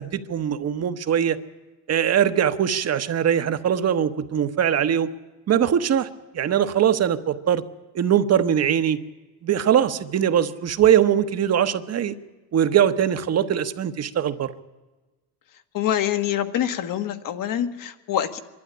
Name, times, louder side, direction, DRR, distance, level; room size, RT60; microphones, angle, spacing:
voice 1, 0.0-1.4 1.9-5.1 5.5-6.1 6.3-7.6 7.9-9.0 9.4-12.1 12.5-14.5, right 9 dB, 40° right, 10 dB, 1.1 m, -21 dB
voice 2, 15.7-18.4, left 11 dB, 55° left, 8 dB, 1.7 m, -25 dB
24.0 x 12.0 x 9.9 m, 1.2 s
cardioid pair, 115°, 39 cm